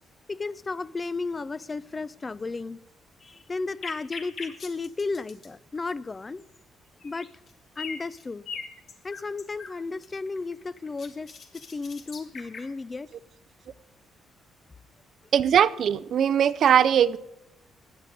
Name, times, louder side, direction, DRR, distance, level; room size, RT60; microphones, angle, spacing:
voice 1, 0.3-2.8 3.2-6.4 7.0-7.3 7.8-8.4 9.0-13.1, left 3 dB, 25° left, 19 dB, 0.4 m, -34 dB
sound 1, 3.8-5.5 6.4-6.6 7.0-7.5 7.8-9.7 10.0-12.7, left 5 dB, 50° left, 1.5 m, -40 dB
voice 2, 15.3-17.2, right 9 dB, 60° right, 15 dB, 0.4 m, -20 dB
14.5 x 9.3 x 5.2 m, 0.86 s
cardioid pair, 115°, 0 cm